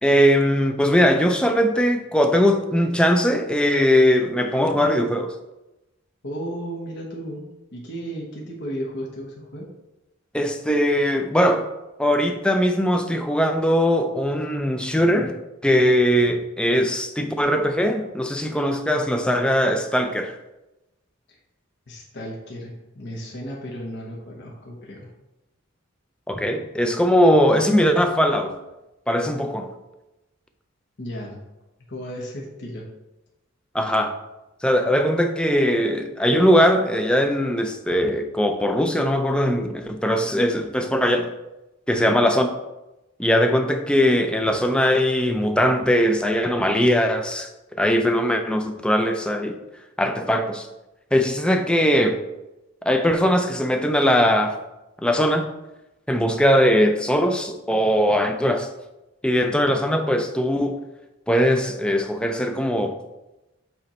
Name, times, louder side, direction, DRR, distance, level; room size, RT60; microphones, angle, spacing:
voice 1, 0.0-5.3 10.3-11.7 12.0-15.4 15.6-20.4 26.3-28.6 29.1-29.7 33.7-34.2 34.6-41.3 41.9-42.5 43.2-47.5 47.8-49.6 50.0-50.7 51.1-52.2 52.9-54.6 55.0-55.5 56.1-58.7 59.2-60.8 61.3-63.0, equal, 5° left, 6 dB, 0.4 m, -20 dB
voice 2, 6.2-9.7 21.3-21.4 21.9-25.1 31.0-31.4 31.9-32.9 41.9-42.2, equal, 60° left, -2 dB, 1.1 m, -34 dB
7.9 x 3.1 x 4.3 m, 0.98 s
head